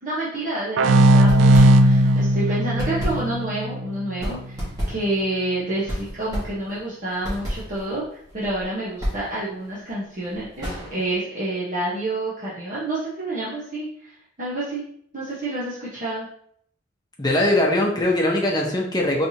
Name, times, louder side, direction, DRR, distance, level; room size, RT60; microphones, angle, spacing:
voice 1, 0.0-4.6 4.9-14.8 15.1-16.3, right 1 dB, 40° right, -9 dB, 1.1 m, -28 dB
sound 1, 0.8-4.2, right 1 dB, 75° right, 0.4 m, -17 dB
sound 2, 1.1-2.2 2.5-11.2, equal, 20° right, 1.7 m, -32 dB
voice 2, 17.2-19.3, left 1 dB, 20° left, -1 dB, 0.8 m, -21 dB
4.4 x 3.3 x 2.8 m, 0.66 s
head